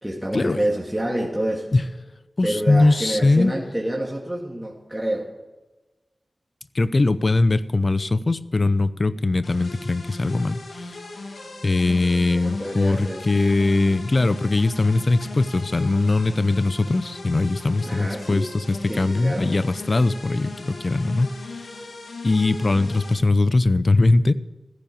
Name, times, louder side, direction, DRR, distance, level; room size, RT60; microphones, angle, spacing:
voice 1, 0.0-1.7 2.4-5.3 12.2-13.4 17.8-18.5 18.9-19.5, right 1 dB, 10° right, -3 dB, 2.5 m, -28 dB
voice 2, 2.4-3.5 6.7-10.9 11.6-21.7 22.2-24.3, left 2 dB, 55° left, 15 dB, 0.7 m, -21 dB
sound 1, 9.4-23.1, left 2 dB, 90° left, 2.1 m, -38 dB
15.0 x 10.0 x 7.1 m, 1.1 s
cardioid pair, 40°, 0 cm